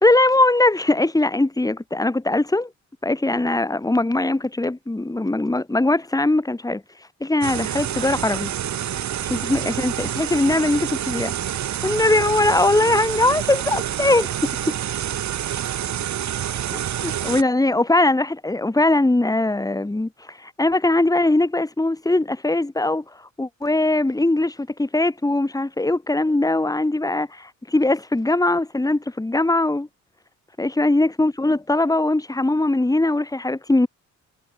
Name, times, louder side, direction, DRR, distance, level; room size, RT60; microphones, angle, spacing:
voice 1, 0.0-2.7 3.0-6.8 7.2-8.5 9.2-11.3 11.8-14.8 16.7-29.9 30.6-33.9, left 2 dB, 10° left, 4.3 m, -21 dB
sound 1, 7.4-17.4, right 10 dB, 65° right, 6.3 m, -27 dB
cardioid pair, 90°, 30 cm